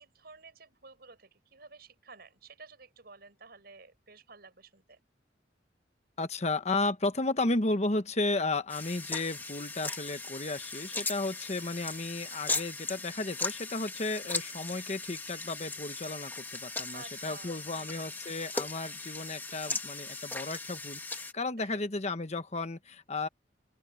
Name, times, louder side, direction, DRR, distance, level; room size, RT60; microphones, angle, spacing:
voice 1, 0.0-5.0 14.1-14.3 16.9-18.2 21.6-21.8, right 4 dB, 60° right, 6.7 m, -53 dB
voice 2, 6.2-23.3, left 2 dB, 40° left, 1.1 m, -33 dB
sound 1, 8.7-21.3, left 3 dB, 10° left, 1.3 m, -38 dB
open air
head